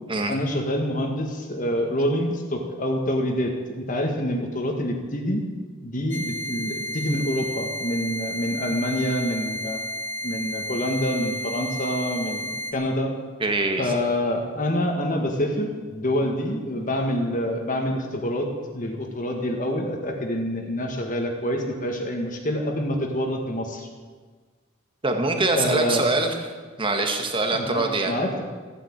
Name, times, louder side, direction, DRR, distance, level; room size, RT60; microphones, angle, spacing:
voice 1, 0.3-5.4 5.8-9.8 10.2-13.1 13.8-23.9 25.6-26.1 27.5-28.4, equal, 40° left, 2 dB, 1.7 m, -26 dB
sound 1, 6.1-12.7, equal, 60° left, 1.9 m, -32 dB
voice 2, 13.4-13.9 25.0-26.4 26.8-28.1, right 2 dB, 25° right, 4 dB, 1.7 m, -23 dB
15.0 x 9.9 x 8.8 m, 1.5 s
head